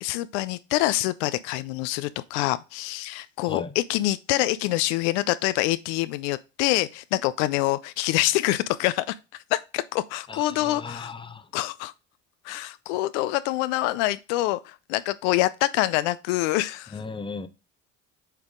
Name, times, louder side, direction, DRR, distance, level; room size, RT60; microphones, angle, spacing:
voice 1, 0.0-11.1 11.5-11.9 12.4-17.0, left 17 dB, 75° left, 0.5 m, -26 dB
voice 2, 10.3-11.5 16.9-17.5, left 4 dB, 15° left, 0.7 m, -36 dB
7.4 x 3.5 x 3.7 m
hypercardioid pair, 70°, 36 cm